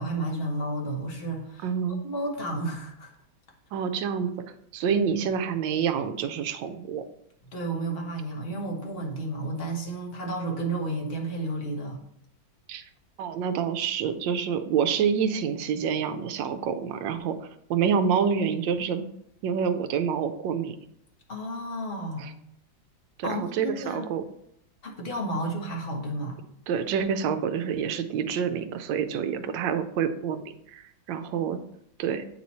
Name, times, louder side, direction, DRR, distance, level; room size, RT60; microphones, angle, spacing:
voice 1, 0.0-3.1 4.8-5.0 7.5-12.0 21.3-22.3 23.2-24.1 24.8-26.4, right 1 dB, 40° left, 0 dB, 1.0 m, -32 dB
voice 2, 1.6-2.0 3.7-4.3 4.7-7.0 12.7-12.9 13.2-19.0 19.4-20.8 22.2-22.3 23.2-24.2 26.7-31.6 32.0-32.2, right 7 dB, 75° right, 9 dB, 1.2 m, -27 dB
8.4 x 3.0 x 4.1 m, 0.75 s
omnidirectional pair, 2.1 m